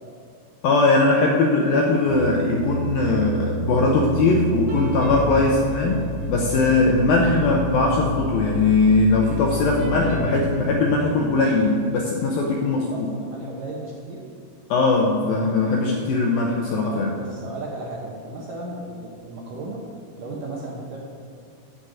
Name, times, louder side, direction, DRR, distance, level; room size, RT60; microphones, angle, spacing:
voice 1, 0.6-6.0 6.3-13.1 14.7-17.1, left 3 dB, 75° left, 0 dB, 2.1 m, -20 dB
sound 1, 2.1-10.6, right 1 dB, 50° right, 2.3 m, -29 dB
voice 2, 12.7-14.3 16.9-19.8 20.2-21.0, right 2 dB, 70° right, -2 dB, 2.1 m, -35 dB
11.5 x 5.2 x 8.7 m, 2.5 s
omnidirectional pair, 5.1 m